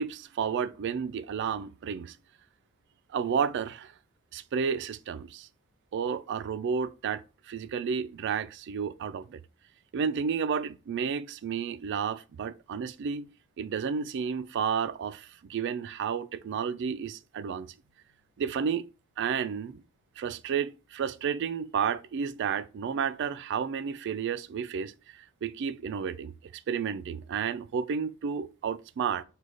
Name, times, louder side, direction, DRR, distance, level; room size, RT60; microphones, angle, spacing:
voice 1, 0.0-2.2 3.1-3.9 4.3-5.5 5.9-9.4 9.9-13.3 13.6-17.7 18.4-18.8 19.2-19.8 20.2-29.2, right 6 dB, 55° right, 0.3 m, -31 dB
4.9 x 2.2 x 3.8 m
head